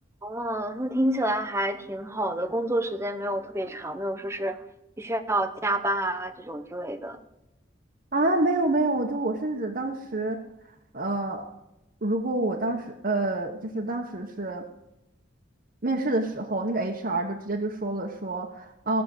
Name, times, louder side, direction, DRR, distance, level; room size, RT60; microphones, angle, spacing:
voice 1, 0.2-4.6 5.0-7.2, right 1 dB, 15° right, 9 dB, 0.8 m, -28 dB
voice 2, 8.1-10.4 10.9-11.4 12.0-14.6 15.8-19.0, right 2 dB, 45° right, 0 dB, 1.1 m, -27 dB
16.5 x 6.8 x 8.0 m, 0.89 s
head